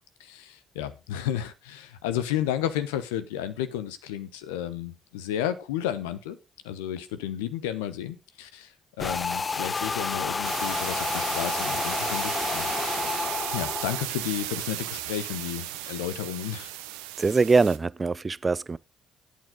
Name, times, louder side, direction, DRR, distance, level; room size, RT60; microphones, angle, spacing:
voice 1, 0.2-6.4 6.6-12.7 13.5-16.7, left 11 dB, 80° left, 0.9 m, -32 dB
sound 1, 9.0-14.0, left 4 dB, 35° left, 0.7 m, -30 dB
sound 2, 10.4-17.8, right 14 dB, 80° right, 0.9 m, -35 dB
voice 2, 17.2-18.8, right 4 dB, 30° right, 0.5 m, -23 dB
13.0 x 8.5 x 3.8 m
hypercardioid pair, 45°, 0 cm